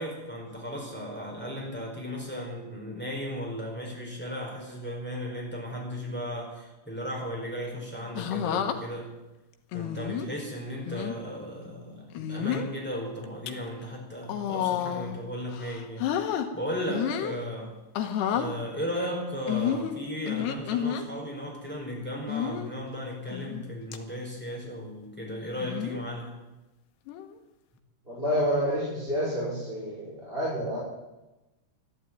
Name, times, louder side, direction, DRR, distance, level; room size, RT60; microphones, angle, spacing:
voice 1, 0.0-9.1 9.7-17.7 18.2-26.4, equal, ahead, -2 dB, 4.5 m, -36 dB
sound 1, 8.2-8.8 9.7-10.3 10.9-11.1 12.1-12.7 13.2-13.5 14.2-15.2 15.5-16.5 16.9-17.4 17.9-18.5 19.5-21.0 22.3-22.7 23.3-23.6 23.9-24.0 25.6-26.0 27.1-27.4, left 9 dB, 85° left, 3.2 m, -30 dB
voice 2, 28.1-30.8, equal, 15° right, -8 dB, 5.5 m, -29 dB
13.0 x 12.0 x 9.1 m, 1.0 s
omnidirectional pair, 4.7 m